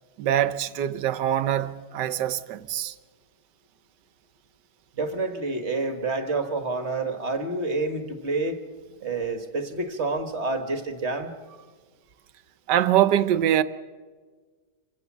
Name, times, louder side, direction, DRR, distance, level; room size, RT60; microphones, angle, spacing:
voice 1, 0.2-2.9 12.7-13.6, right 11 dB, 75° right, 1.4 m, -23 dB
voice 2, 4.9-8.6 9.0-11.3, right 3 dB, 40° right, 1.6 m, -28 dB
27.0 x 16.0 x 7.2 m
omnidirectional pair, 1.9 m